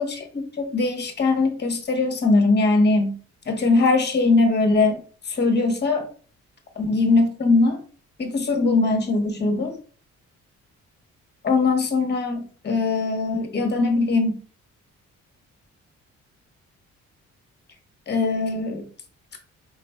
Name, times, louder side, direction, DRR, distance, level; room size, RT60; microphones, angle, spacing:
voice 1, 0.0-3.2 3.5-4.9 5.3-6.1 6.8-7.8 8.2-9.8 11.4-14.4 18.1-18.9, left 3 dB, 35° left, 4 dB, 1.1 m, -21 dB
4.1 x 3.9 x 2.3 m, 0.41 s
cardioid pair, 90°, 30 cm